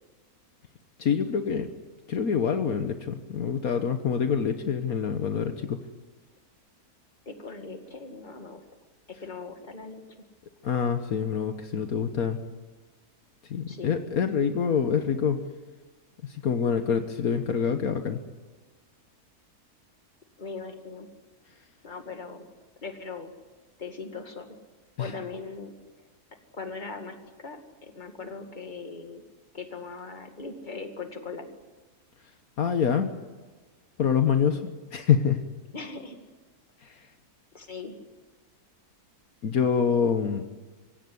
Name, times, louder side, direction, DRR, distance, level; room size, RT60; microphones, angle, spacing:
voice 1, 1.0-1.7 2.1-5.8 10.6-12.4 13.5-15.4 16.2-18.2 25.0-25.1 32.6-33.1 34.0-34.6 34.9-35.4 39.4-40.4, left 7 dB, 70° left, 7 dB, 1.6 m, -26 dB
voice 2, 7.3-8.6 9.2-10.3 13.7-13.9 20.4-21.1 21.8-22.5 22.8-23.3 23.8-24.5 25.0-25.7 26.5-29.2 29.5-31.5 35.7-36.2 37.5-38.0, left 4 dB, 30° left, 5 dB, 2.3 m, -39 dB
25.0 x 16.5 x 9.5 m, 1.3 s
omnidirectional pair, 1.6 m